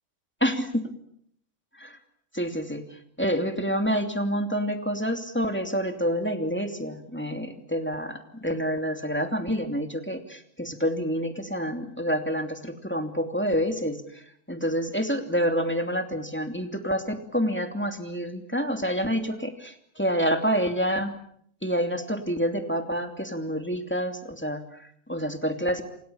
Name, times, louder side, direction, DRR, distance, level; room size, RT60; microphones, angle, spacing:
voice 1, 0.4-0.9 1.8-2.0 2.3-21.1 21.6-25.8, equal, 10° left, 5 dB, 2.8 m, -28 dB
28.0 x 27.5 x 7.1 m, 0.68 s
omnidirectional pair, 1.3 m